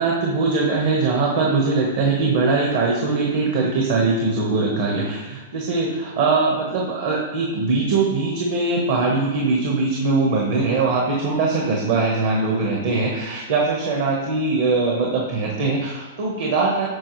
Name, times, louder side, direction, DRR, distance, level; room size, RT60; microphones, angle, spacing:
voice 1, 0.0-16.9, right 3 dB, 65° right, -1 dB, 1.3 m, -21 dB
11.5 x 4.1 x 3.2 m, 1.2 s
hypercardioid pair, 130°, 0 cm